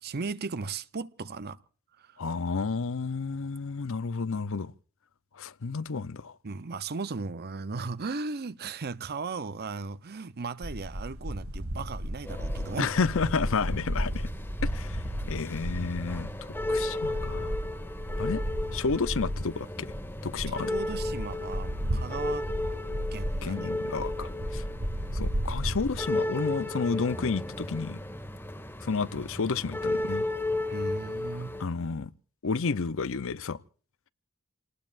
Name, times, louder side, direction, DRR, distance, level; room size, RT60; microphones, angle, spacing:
voice 1, 0.0-1.6 2.0-2.2 6.4-12.9 20.6-22.5 23.1-23.7 30.7-31.6, right 4 dB, 45° right, 0.7 m, -36 dB
voice 2, 2.2-4.7 5.3-6.4 12.8-14.3 14.6-17.6 18.2-18.4 18.7-19.9 20.2-20.7 23.4-24.6 25.1-28.0 28.8-30.3 31.6-32.1 32.4-33.6, left 4 dB, 65° left, 0.7 m, -31 dB
sound 1, 10.6-19.5 19.9-26.1, equal, 75° right, 2.2 m, -34 dB
sound 2, 12.2-31.6, left 1 dB, 10° left, 1.5 m, -35 dB
29.0 x 19.5 x 2.5 m
head